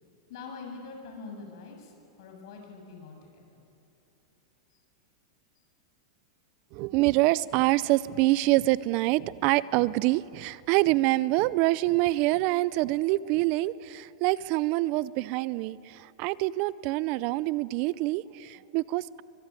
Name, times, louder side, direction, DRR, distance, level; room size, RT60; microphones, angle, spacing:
voice 1, 0.3-3.6, left 4 dB, 65° left, 3 dB, 7.1 m, -44 dB
voice 2, 6.7-19.2, right 19 dB, 45° right, 20 dB, 0.6 m, -26 dB
24.5 x 22.0 x 9.8 m, 2.8 s
supercardioid pair, 130°, 3 cm